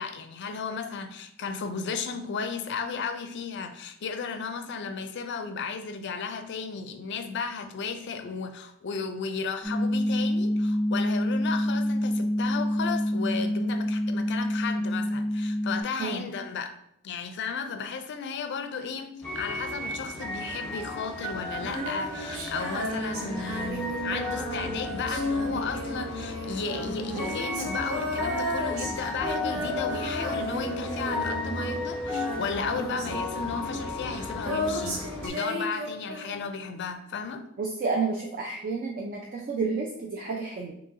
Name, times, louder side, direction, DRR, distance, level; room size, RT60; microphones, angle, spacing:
voice 1, 0.0-16.7 17.0-37.4, left 5 dB, 55° left, 8 dB, 0.4 m, -34 dB
sound 1, 9.6-15.8, equal, 20° right, 1.0 m, -27 dB
sound 2, 19.2-35.3, left 2 dB, 5° left, 0.8 m, -34 dB
Female singing, 21.5-31.9 32.1-36.6, equal, 75° right, 0.8 m, -34 dB
voice 2, 37.6-40.7, right 4 dB, 40° right, -1 dB, 0.4 m, -30 dB
3.9 x 2.7 x 2.7 m, 0.72 s
head